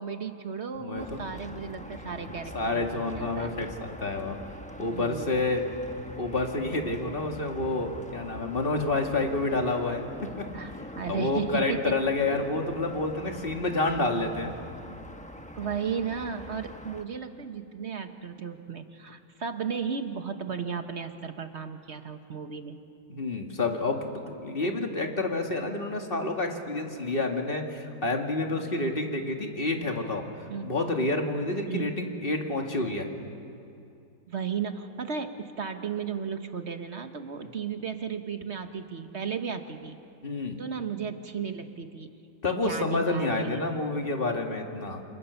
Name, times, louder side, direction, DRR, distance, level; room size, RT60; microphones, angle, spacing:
voice 1, 0.0-3.6 4.9-5.3 10.5-12.0 15.6-22.8 30.5-30.7 31.7-31.9 34.3-40.0 40.6-42.1 42.5-43.7, right 6 dB, 45° right, 7 dB, 1.2 m, -35 dB
voice 2, 0.8-1.3 2.5-4.4 4.8-5.6 6.2-10.8 11.1-14.5 23.1-30.2 30.6-33.1 37.4-37.5 40.2-40.6 42.4-45.0, left 2 dB, 30° left, 3 dB, 2.3 m, -29 dB
sound 1, 0.9-17.0, left 1 dB, 5° left, 0.6 m, -44 dB
28.5 x 27.0 x 7.0 m, 2.6 s
omnidirectional pair, 2.0 m